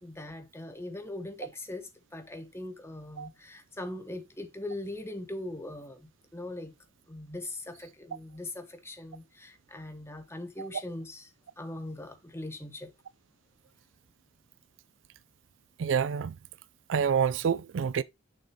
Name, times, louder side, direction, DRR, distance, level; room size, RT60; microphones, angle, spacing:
voice 1, 0.0-6.7 7.1-12.9, left 1 dB, 15° left, 1.1 m, -41 dB
voice 2, 15.8-16.4 16.9-18.0, right 7 dB, 70° right, 0.4 m, -27 dB
6.5 x 6.3 x 3.2 m
head